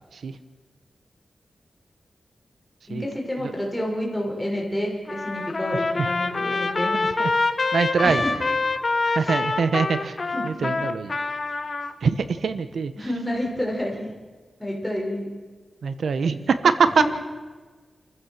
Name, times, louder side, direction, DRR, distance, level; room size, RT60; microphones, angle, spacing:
voice 1, 2.9-6.9 8.0-8.3 9.1-9.4 10.3-10.4 13.0-14.1 14.6-15.3 17.0-17.1, left 1 dB, 5° left, -2 dB, 5.9 m, -29 dB
Trumpet, 5.1-11.9, left 3 dB, 40° left, 1.4 m, -25 dB
voice 2, 5.7-6.1 7.2-7.3 7.7-8.2 9.1-10.2 10.4-11.2 12.0-12.9 15.8-17.0, right 5 dB, 85° right, 11 dB, 1.1 m, -23 dB
28.5 x 14.5 x 7.3 m, 1.4 s
wide cardioid pair, 125°, 0 cm